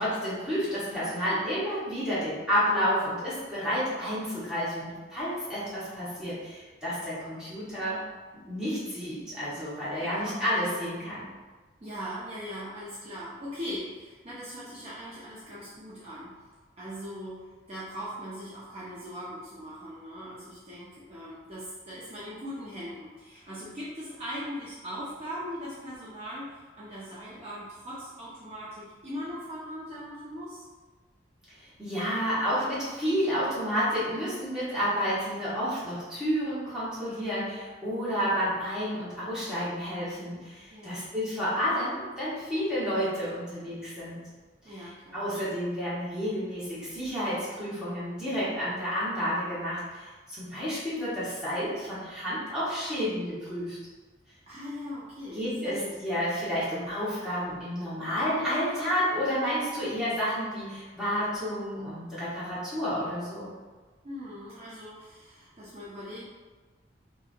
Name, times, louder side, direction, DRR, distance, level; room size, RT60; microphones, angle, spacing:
voice 1, 0.0-8.0 8.5-11.3 31.5-44.2 44.7-44.8 45.1-53.8 55.3-63.5, equal, 5° right, -12 dB, 1.0 m, -30 dB
voice 2, 10.1-10.5 11.8-16.4 16.8-30.7 40.7-41.1 44.6-45.7 54.5-56.0 64.0-66.2, equal, 35° right, -9 dB, 0.5 m, -40 dB
2.8 x 2.5 x 2.5 m, 1.3 s
head